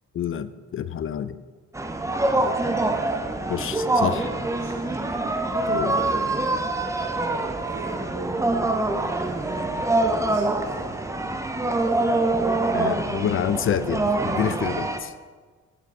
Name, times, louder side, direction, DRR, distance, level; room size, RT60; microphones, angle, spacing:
voice 1, 0.1-1.3 3.5-4.3 5.7-6.0 12.6-15.1, left 9 dB, 40° left, 14 dB, 0.4 m, -28 dB
sound 1, 1.7-15.0, right 2 dB, 10° right, 0.5 m, -25 dB
voice 2, 4.5-5.1 7.7-8.4 9.3-11.0, right 5 dB, 85° right, 1 dB, 0.8 m, -42 dB
6.7 x 6.2 x 3.6 m, 1.4 s
cardioid pair, 80°, 32 cm